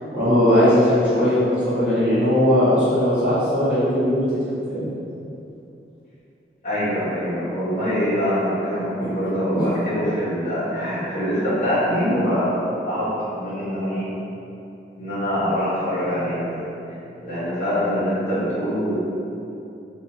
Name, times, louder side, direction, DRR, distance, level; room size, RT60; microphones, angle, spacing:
voice 1, 0.1-4.3 4.7-4.8 9.5-9.7, equal, 5° right, -17 dB, 1.3 m, -18 dB
voice 2, 6.6-14.1 14.9-16.7 17.2-19.0, equal, 45° left, -13 dB, 1.1 m, -24 dB
2.9 x 2.7 x 2.6 m, 2.8 s
head